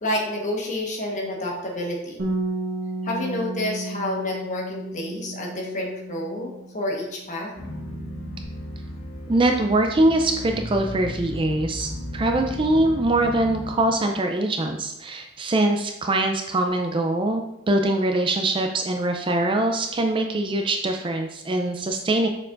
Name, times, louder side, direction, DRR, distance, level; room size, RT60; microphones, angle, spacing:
voice 1, 0.0-2.3 3.0-7.5, left 1 dB, 35° left, -1 dB, 1.2 m, -29 dB
Bass guitar, 2.2-6.9 7.2-8.4, right 2 dB, 70° right, 1.2 m, -33 dB
sound 1, 7.6-13.7, left 1 dB, 80° left, 1.6 m, -35 dB
voice 2, 9.3-22.3, right 2 dB, 25° right, 4 dB, 0.4 m, -23 dB
6.8 x 6.0 x 2.5 m, 0.87 s
head